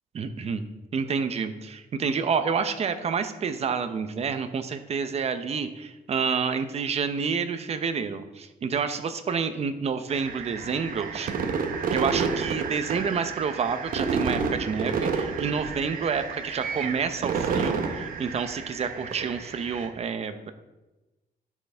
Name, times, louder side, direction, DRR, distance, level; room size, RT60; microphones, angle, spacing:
voice 1, 0.1-0.6 0.9-11.3 11.9-20.5, right 6 dB, 40° right, 9 dB, 0.7 m, -29 dB
sound 1, 10.1-19.9, right 5 dB, 65° right, 1.1 m, -30 dB
11.0 x 7.9 x 3.5 m, 1.1 s
cardioid pair, 150°, 16 cm